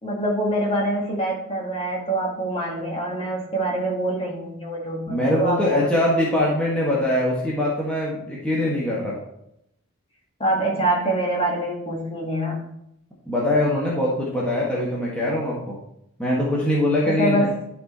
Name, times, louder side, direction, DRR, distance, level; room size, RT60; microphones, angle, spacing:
voice 1, 0.0-5.9 10.4-12.7 17.1-17.6, right 1 dB, 25° left, -2 dB, 1.9 m, -25 dB
voice 2, 5.1-9.2 13.3-15.8 16.2-17.5, left 1 dB, 5° left, -6 dB, 1.5 m, -22 dB
11.5 x 4.2 x 4.3 m, 0.78 s
head